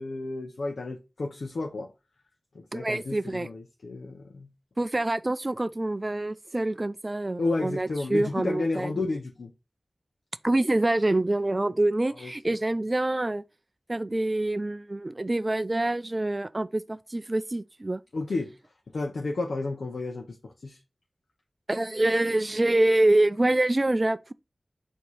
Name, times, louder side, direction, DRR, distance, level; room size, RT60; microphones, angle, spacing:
voice 1, 0.0-1.9 2.7-4.5 7.4-9.5 12.2-12.5 18.1-18.5 18.9-20.8, left 3 dB, 90° left, 0.6 m, -32 dB
voice 2, 2.7-3.5 4.8-9.0 10.4-13.4 13.9-18.0 21.7-24.3, right 2 dB, 35° right, 0.3 m, -26 dB
4.7 x 2.8 x 4.0 m
wide cardioid pair, 60°, 0 cm